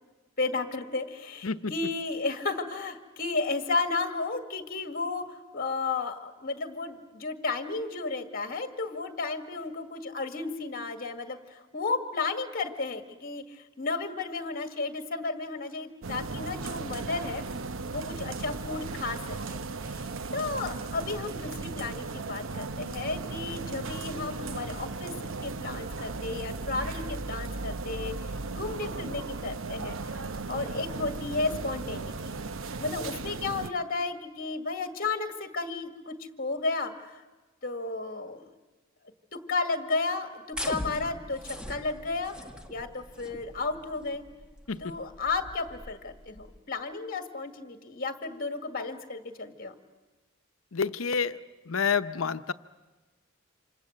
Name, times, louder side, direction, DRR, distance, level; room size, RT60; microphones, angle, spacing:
voice 1, 0.4-17.4 17.9-19.6 19.9-20.0 20.3-25.1 25.4-28.2 28.5-30.0 30.5-32.3 32.8-37.1 37.6-38.5 39.3-42.3 42.7-44.2 44.8-49.7, left 3 dB, 45° left, 7 dB, 1.9 m, -33 dB
sound 1, 16.0-33.7, right 3 dB, 70° right, 0.9 m, -36 dB
sound 2, 40.5-46.6, left 1 dB, 5° right, 1.8 m, -42 dB
voice 2, 44.7-45.0 50.7-51.4 51.7-52.5, left 6 dB, 90° left, 12 dB, 0.8 m, -28 dB
28.0 x 26.5 x 7.9 m, 1.2 s
head